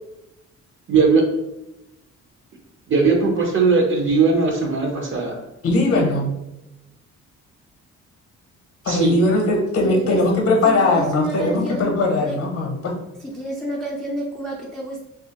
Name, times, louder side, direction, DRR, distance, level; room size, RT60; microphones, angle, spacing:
voice 1, 0.9-1.2 2.9-5.3 8.9-9.1, right 4 dB, 40° right, 2 dB, 0.7 m, -18 dB
voice 2, 5.6-6.3 8.8-12.9, left 2 dB, 50° left, 1 dB, 0.7 m, -19 dB
voice 3, 9.8-10.2 10.6-11.9 12.2-12.4 13.4-15.0, right 1 dB, ahead, -2 dB, 0.4 m, -29 dB
2.9 x 2.4 x 2.8 m, 0.94 s
cardioid pair, 90°, 30 cm